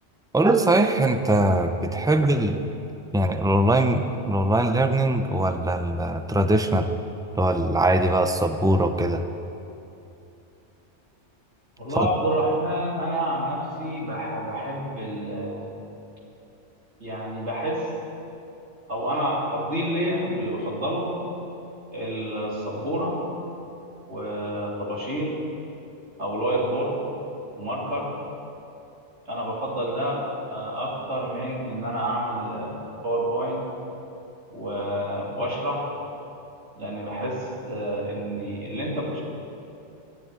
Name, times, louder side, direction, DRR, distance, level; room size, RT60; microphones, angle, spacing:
voice 1, 0.3-2.6 3.1-6.9 7.4-9.2 12.0-12.1, right 1 dB, 5° right, 7 dB, 0.4 m, -21 dB
voice 2, 11.8-15.7 17.0-17.9 18.9-21.2 21.9-23.2 24.1-25.3 26.2-27.0 27.5-28.1 29.2-33.6 34.5-35.9 36.8-39.2, right 1 dB, 70° right, -5 dB, 3.4 m, -28 dB
12.0 x 11.0 x 9.7 m, 2.8 s
omnidirectional pair, 1.2 m